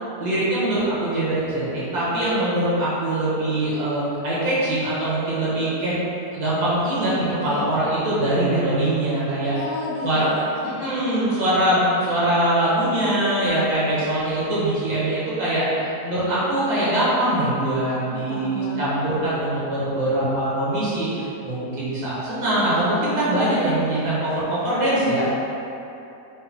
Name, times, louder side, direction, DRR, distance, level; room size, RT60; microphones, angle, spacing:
voice 1, 0.2-5.9 6.3-9.5 10.0-10.2 10.6-15.7 16.0-25.3, right 1 dB, 65° right, -10 dB, 1.8 m, -22 dB
voice 2, 7.4-7.7 9.5-11.5 18.1-19.3, left 2 dB, 75° left, -5 dB, 1.2 m, -34 dB
5.1 x 2.2 x 3.4 m, 2.8 s
omnidirectional pair, 1.8 m